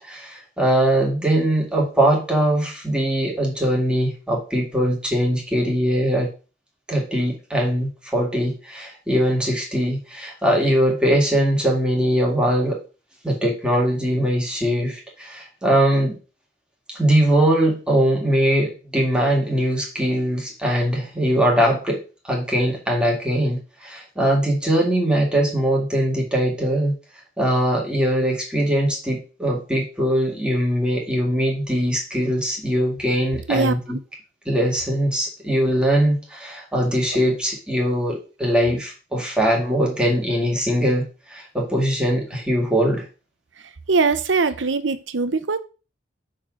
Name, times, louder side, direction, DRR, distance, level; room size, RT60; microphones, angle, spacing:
voice 1, 0.0-6.3 6.9-12.8 13.2-16.2 16.9-26.9 27.4-34.0 34.5-43.0, equal, 5° right, 2.1 m, -21 dB
voice 2, 43.9-45.6, right 4 dB, 75° right, 0.7 m, -21 dB
6.3 x 4.0 x 6.3 m
head